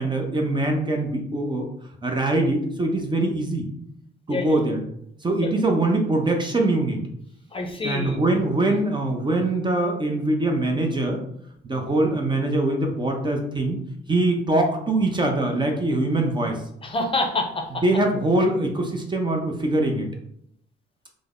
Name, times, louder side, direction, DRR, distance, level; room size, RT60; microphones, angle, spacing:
voice 1, 0.0-1.7 2.0-3.7 4.3-4.8 5.2-7.0 7.8-11.2 11.6-13.8 14.1-16.6 17.8-20.1, right 2 dB, 25° right, 2 dB, 0.6 m, -23 dB
voice 2, 4.3-4.7 5.4-5.5 7.5-8.8 16.8-17.8, left 2 dB, 25° left, 2 dB, 0.6 m, -28 dB
3.3 x 2.0 x 3.6 m, 0.71 s
cardioid pair, 90°, 20 cm